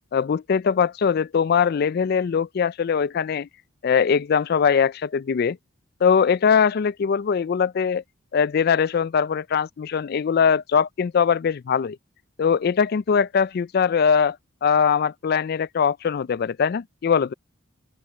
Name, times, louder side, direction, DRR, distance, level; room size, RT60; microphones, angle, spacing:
voice 1, 0.1-3.5 3.8-5.6 6.0-8.0 8.3-12.0 12.4-14.4 14.6-17.3, left 6 dB, 50° left, 0.3 m, -21 dB
open air
head